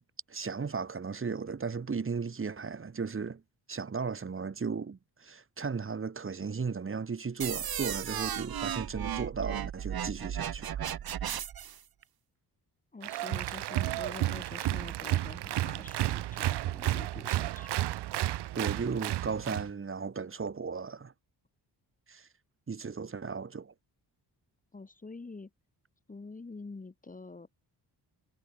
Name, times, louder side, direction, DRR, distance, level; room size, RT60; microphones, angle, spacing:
voice 1, 0.3-3.4 3.7-10.8 18.6-21.1 22.1-22.3 22.7-23.7, right 5 dB, 30° right, 5.9 m, -35 dB
sound 1, 7.4-11.8, right 10 dB, 60° right, 2.6 m, -35 dB
voice 2, 12.9-17.8 24.7-25.5 26.1-27.5, left 3 dB, 20° left, 4.7 m, -46 dB
Applause, 13.0-19.7, right 14 dB, 80° right, 0.8 m, -32 dB
wide cardioid pair, 170°, 41 cm